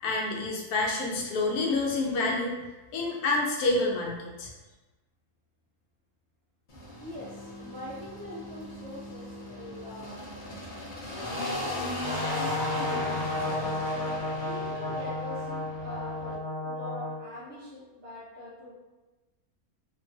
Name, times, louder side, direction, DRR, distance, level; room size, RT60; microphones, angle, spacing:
voice 1, 0.0-2.5 2.9-4.5, left 2 dB, 85° left, -1 dB, 1.1 m, -28 dB
sound 1, 6.7-16.4, left 1 dB, 55° left, 0.5 m, -37 dB
voice 2, 7.0-10.2 11.2-13.8 14.5-18.7, left 1 dB, 60° right, -6 dB, 0.7 m, -43 dB
Brass instrument, 12.0-17.2, left 2 dB, 30° left, 1.2 m, -33 dB
3.0 x 2.3 x 2.4 m, 1.1 s
omnidirectional pair, 1.5 m